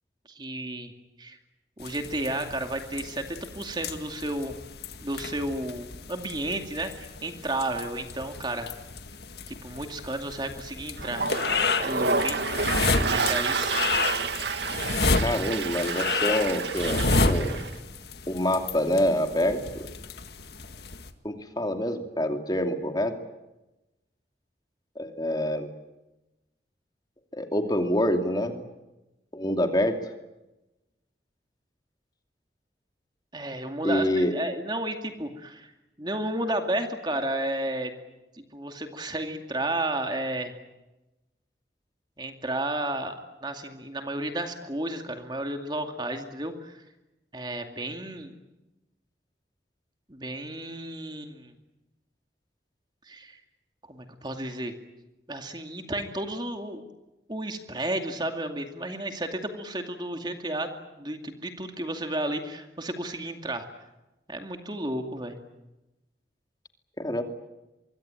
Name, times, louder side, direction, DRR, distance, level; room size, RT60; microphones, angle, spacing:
voice 1, 0.3-0.9 1.2-1.4 1.8-4.6 5.0-8.7 9.5-11.3 11.8-12.5 12.9-13.7 33.3-35.7 36.0-37.9 38.3-40.6 42.2-43.2 43.4-46.8 47.3-48.3 50.1-51.5 53.1-53.4 53.9-54.7 55.3-56.8 57.3-60.7 61.0-63.7 64.3-65.4, right 1 dB, 25° right, 5 dB, 2.4 m, -32 dB
sound 1, 1.8-21.1, left 3 dB, 70° left, 1.9 m, -31 dB
Toilet flush, 11.0-17.7, right 4 dB, 80° right, 2.1 m, -29 dB
voice 2, 15.2-17.6 18.3-19.9 21.2-23.2 25.0-25.7 27.3-28.6 29.3-30.0 33.8-34.3 67.0-67.2, left 1 dB, 25° left, 5 dB, 2.6 m, -26 dB
24.5 x 23.5 x 9.0 m, 1.0 s
head